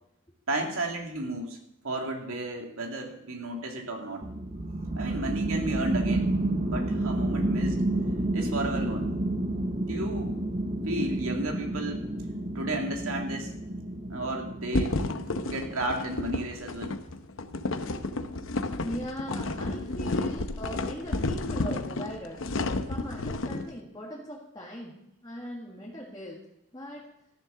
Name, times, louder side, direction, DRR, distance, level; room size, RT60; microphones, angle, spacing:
voice 1, 0.5-1.6 1.8-4.2 4.9-6.4 6.6-7.8 8.3-9.1 9.9-10.4 10.8-12.1 12.5-13.5 14.1-15.0 15.5-16.9, right 1 dB, 90° right, 2 dB, 2.3 m, -33 dB
sound 1, 4.2-16.3, right 2 dB, 35° right, 1.0 m, -30 dB
sound 2, 14.7-23.7, left 2 dB, 75° left, 0.8 m, -31 dB
voice 2, 18.8-26.4 26.7-27.1, equal, 20° left, -3 dB, 1.8 m, -40 dB
14.0 x 7.3 x 6.7 m, 0.82 s
head